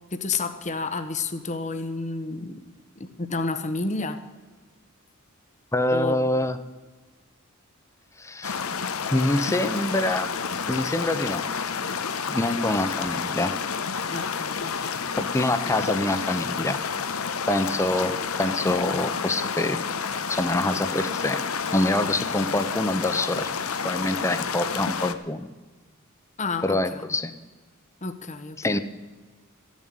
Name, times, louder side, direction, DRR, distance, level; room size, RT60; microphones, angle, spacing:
voice 1, 0.1-2.5 3.0-4.2 5.9-6.3 14.1-14.7 26.4-27.0 28.0-28.8, left 3 dB, 35° left, 9 dB, 0.9 m, -30 dB
voice 2, 5.7-6.6 8.2-8.6 9.1-10.3 10.7-11.5 12.3-13.5 15.2-16.8 17.5-19.8 20.3-21.4 21.7-23.5 23.8-25.5 26.6-27.3 28.6-28.8, left 1 dB, 15° left, 11 dB, 0.7 m, -25 dB
sound 1, 8.4-25.1, left 6 dB, 80° left, 0.9 m, -30 dB
14.0 x 7.4 x 9.9 m, 1.3 s
head